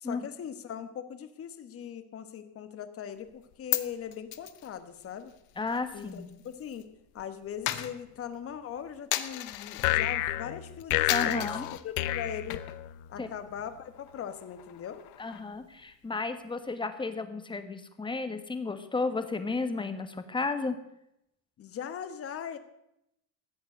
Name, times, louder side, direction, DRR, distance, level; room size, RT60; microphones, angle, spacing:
voice 1, 0.0-5.3 5.9-6.9 7.1-11.5 11.8-12.6 13.1-15.0 21.6-22.6, left 8 dB, 35° left, 10 dB, 1.3 m, -40 dB
Coin (dropping), 3.3-6.8 7.1-10.0 10.4-10.7 11.1-11.8 12.3-12.9 13.2-13.3 13.7-15.6, left 15 dB, 65° left, 1.1 m, -37 dB
voice 2, 5.6-6.3 11.1-11.7 13.2-13.3 15.2-20.8, left 3 dB, 15° left, 9 dB, 1.3 m, -33 dB
sound 1, 9.8-13.2, left 15 dB, 90° left, 0.6 m, -30 dB
14.5 x 8.0 x 7.8 m, 0.81 s
cardioid pair, 125°, 38 cm